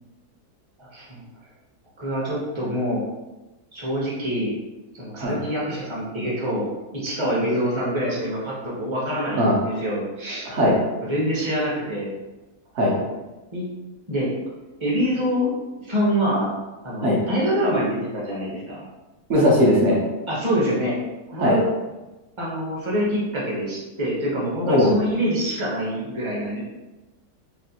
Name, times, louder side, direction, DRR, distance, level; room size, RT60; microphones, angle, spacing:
voice 1, 0.8-1.2 2.0-3.0 3.7-4.5 4.9-6.6 6.9-10.5 11.0-12.1 12.9-13.0 13.5-13.7 14.1-14.3 14.8-15.5 15.8-16.5 16.8-18.8 20.3-21.0 21.3-21.6 22.4-26.6, equal, 30° right, -6 dB, 0.6 m, -25 dB
voice 2, 19.3-20.0 21.4-21.6 24.6-24.9, left 1 dB, 55° right, -4 dB, 1.0 m, -18 dB
3.3 x 2.3 x 2.7 m, 1.1 s
omnidirectional pair, 1.6 m